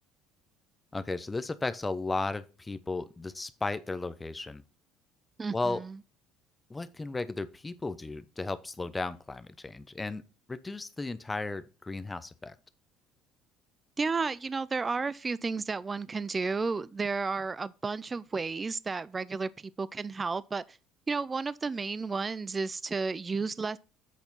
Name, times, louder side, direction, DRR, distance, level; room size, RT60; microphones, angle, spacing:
voice 1, 0.9-4.6 5.5-5.8 6.7-10.2 10.5-12.5, left 3 dB, 20° left, 0.8 m, -35 dB
voice 2, 5.4-6.0 14.0-20.8 21.1-23.8, right 4 dB, 25° right, 0.4 m, -32 dB
8.3 x 4.3 x 5.5 m
hypercardioid pair, 70°, 0 cm